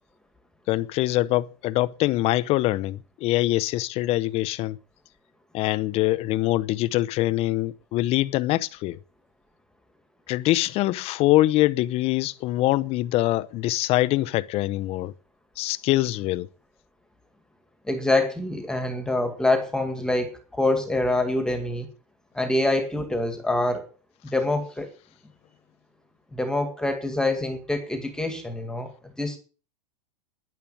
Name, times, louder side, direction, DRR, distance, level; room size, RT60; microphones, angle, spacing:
voice 1, 0.7-4.8 5.5-9.0 10.3-15.1 15.6-16.5, left 17 dB, 35° left, 0.8 m, -24 dB
voice 2, 17.8-21.9 22.3-23.9 24.2-24.9 26.3-29.4, left 2 dB, 5° left, 2.0 m, -25 dB
11.0 x 10.5 x 8.9 m
supercardioid pair, 145°, 18 cm